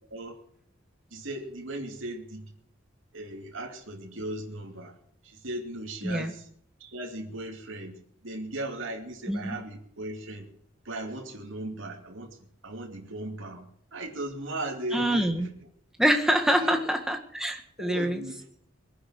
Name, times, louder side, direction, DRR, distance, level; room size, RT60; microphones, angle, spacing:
voice 1, 0.1-0.4 1.1-2.5 3.1-5.0 5.2-6.5 6.8-10.5 10.8-12.4 12.6-15.5 16.6-16.8 17.8-18.4, right 1 dB, 75° right, 0 dB, 2.7 m, -37 dB
voice 2, 14.9-15.5 16.0-18.2, equal, ahead, 4 dB, 1.6 m, -25 dB
21.5 x 10.0 x 6.4 m, 0.64 s
head